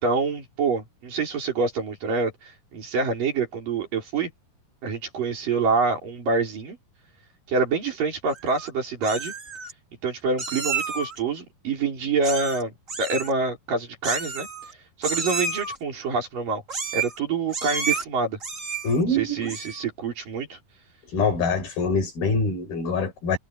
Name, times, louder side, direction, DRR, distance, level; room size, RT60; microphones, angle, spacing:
voice 1, 0.0-4.3 4.8-6.8 7.5-9.3 10.0-12.7 13.0-14.5 15.0-16.6 16.9-18.4 19.1-20.6, right 4 dB, 65° right, 6.4 m, -26 dB
Meow, 8.3-8.7 9.0-9.7 10.4-11.2 12.2-12.6 12.9-13.3 14.0-14.7 15.0-15.8 16.7-17.2 17.5-18.0 18.4-19.0 19.4-19.8, right 4 dB, 25° right, 2.2 m, -30 dB
voice 2, 18.8-19.5 21.1-23.4, left 3 dB, 75° left, 7.3 m, -24 dB
omnidirectional pair, 4.3 m